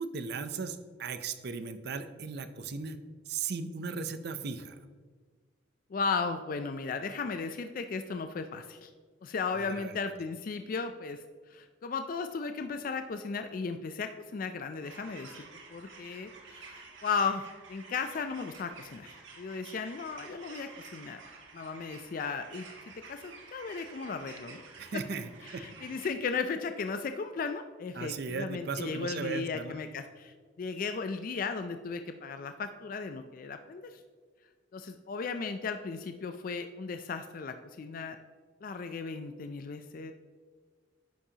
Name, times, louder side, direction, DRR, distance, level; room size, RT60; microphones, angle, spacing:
voice 1, 0.0-3.0 3.3-4.8 9.6-10.0 24.8-25.6 27.9-29.8, right 5 dB, 55° right, 11 dB, 0.5 m, -37 dB
voice 2, 5.9-8.9 9.2-15.4 15.7-21.2 21.5-24.6 25.4-34.0 34.7-38.2 38.6-40.1, left 5 dB, 45° left, 8 dB, 0.4 m, -36 dB
sound 1, 14.8-26.1, right 4 dB, 80° right, 1.5 m, -51 dB
10.0 x 7.2 x 2.8 m, 1.5 s
head